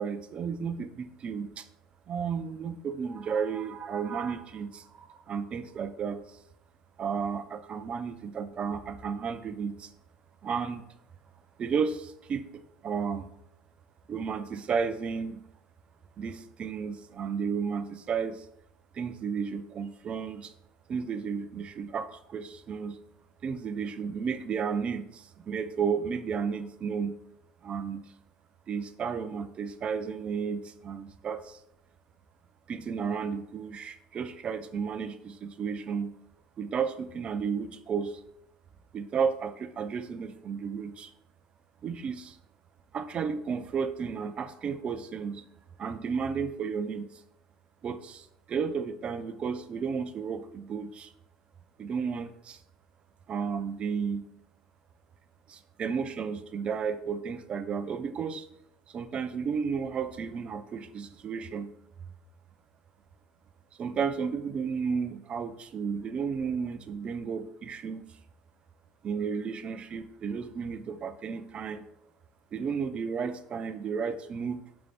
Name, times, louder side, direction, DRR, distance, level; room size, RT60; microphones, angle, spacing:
voice 1, 0.0-1.6 2.1-6.2 7.0-9.9 10.4-10.8 11.6-13.3 14.1-15.4 16.2-18.5 18.9-20.5 20.9-23.0 23.4-27.1 27.6-28.0 28.7-31.6 32.7-36.1 36.6-38.2 38.9-41.1 41.8-42.4 42.9-45.4 45.8-47.1 47.8-51.1 51.8-52.6 53.3-54.2 55.5-58.5 58.9-61.7 63.8-68.0 69.0-71.8 72.5-74.6, right 6 dB, 40° right, 10 dB, 0.3 m, -33 dB
3.1 x 2.6 x 3.4 m, 0.74 s
hypercardioid pair, 85°, 3 cm